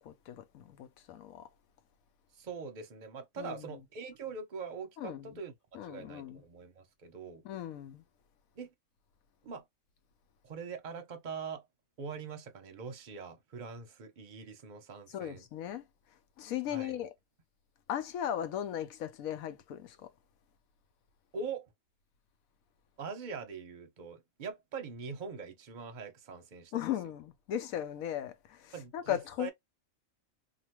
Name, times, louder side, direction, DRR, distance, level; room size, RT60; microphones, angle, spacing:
voice 1, 0.0-1.5 3.4-3.8 5.0-5.4 5.7-6.4 7.4-8.0 15.1-15.9 16.4-17.1 17.9-20.1 26.7-29.5, left 10 dB, 85° left, 1.1 m, -37 dB
voice 2, 2.4-5.5 5.9-7.4 8.6-8.7 9.4-9.6 10.4-11.6 12.0-15.4 16.7-16.9 21.3-21.7 23.0-26.9 28.7-29.5, right 5 dB, 45° right, 0.7 m, -43 dB
2.9 x 2.4 x 2.9 m
omnidirectional pair, 1.4 m